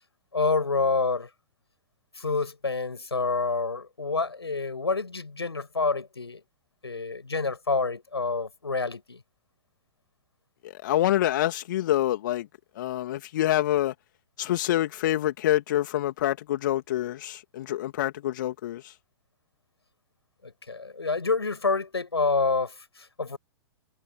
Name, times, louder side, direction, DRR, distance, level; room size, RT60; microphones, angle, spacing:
voice 1, 0.3-1.3 2.1-6.4 6.8-9.2 20.4-23.4, left 4 dB, 80° left, 6.6 m, -28 dB
voice 2, 10.6-12.5 12.8-13.9 14.4-18.9, left 13 dB, 50° left, 2.4 m, -26 dB
figure-of-eight pair, 115°, 13 cm